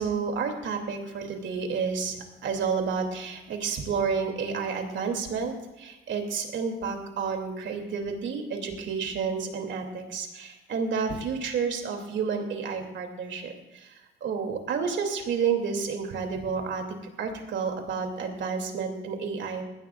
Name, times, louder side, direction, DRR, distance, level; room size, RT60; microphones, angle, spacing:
voice 1, 0.0-2.2 2.4-13.9 14.2-16.8 17.2-19.6, right 5 dB, 70° right, 3 dB, 2.7 m, -30 dB
20.0 x 15.0 x 2.5 m, 1.1 s
cardioid pair, 90°, 20 cm